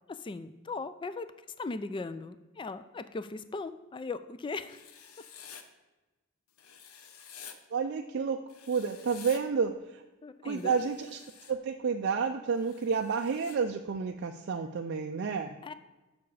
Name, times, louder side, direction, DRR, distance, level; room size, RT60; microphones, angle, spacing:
voice 1, 0.1-1.3 1.6-4.8 10.2-10.7 15.6-15.7, left 3 dB, 20° left, 12 dB, 0.3 m, -38 dB
Writing, 4.6-5.6 6.6-7.6 8.5-9.4 10.5-11.5 12.6-13.6, left 8 dB, 90° left, 0.7 m, -50 dB
voice 2, 7.7-8.4 8.7-10.0 10.4-11.2 11.5-15.6, right 5 dB, 50° right, 4 dB, 0.4 m, -30 dB
7.1 x 6.0 x 4.8 m, 1.1 s
head